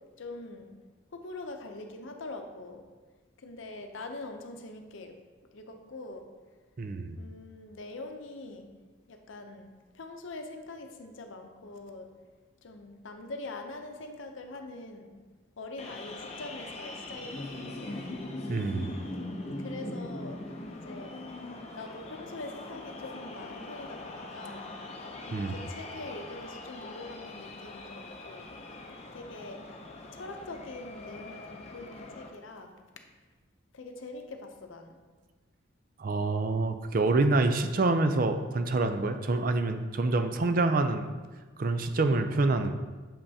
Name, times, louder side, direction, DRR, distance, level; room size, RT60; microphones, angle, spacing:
voice 1, 0.2-0.7 1.1-2.8 3.4-5.1 5.5-6.2 7.1-8.7 9.1-12.1 12.6-15.2 15.6-18.1 19.1-20.4 20.8-21.2 21.8-24.7 25.2-28.5 29.1-29.6 30.1-32.7 33.7-35.0, left 2 dB, 70° left, 5 dB, 0.6 m, -43 dB
voice 2, 6.8-7.2 18.5-18.9 25.3-25.6 36.0-41.1 41.6-42.7, right 2 dB, 40° right, 8 dB, 0.4 m, -26 dB
sound 1, 15.8-32.3, left 2 dB, 30° left, 0.6 m, -41 dB
7.1 x 5.4 x 2.8 m, 1.3 s
head